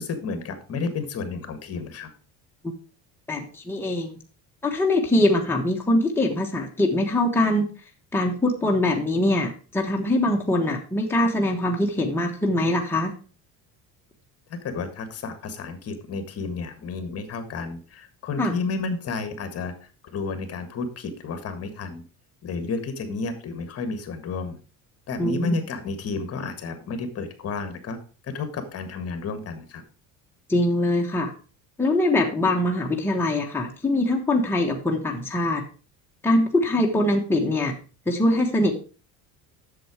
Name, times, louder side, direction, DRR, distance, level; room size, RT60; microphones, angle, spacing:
voice 1, 0.0-2.1 14.5-19.7 20.1-22.0 22.4-24.6 25.1-28.0 28.2-29.8, left 4 dB, 40° left, 9 dB, 1.7 m, -31 dB
voice 2, 3.3-4.1 4.6-7.7 8.1-13.1 18.4-18.5 25.2-25.5 30.5-31.3 31.8-35.6 36.2-37.7 38.1-38.7, left 1 dB, 5° left, 0 dB, 1.3 m, -23 dB
7.8 x 7.0 x 4.9 m, 0.37 s
cardioid pair, 125°, 36 cm